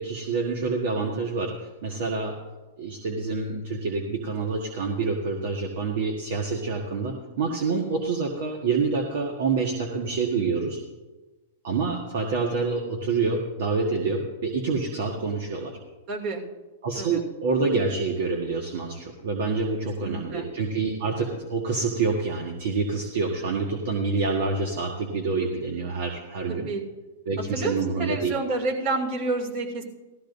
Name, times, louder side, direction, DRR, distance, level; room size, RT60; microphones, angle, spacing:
voice 1, 0.0-2.4 2.8-10.8 11.6-15.8 16.8-26.7 27.3-28.3, right 4 dB, 65° right, 1 dB, 1.5 m, -27 dB
voice 2, 16.1-16.4 16.9-17.2 20.0-20.5 26.5-26.8 27.5-29.8, right 3 dB, 50° right, 0 dB, 2.7 m, -29 dB
17.5 x 13.5 x 2.7 m, 1.2 s
hypercardioid pair, 125°, 0 cm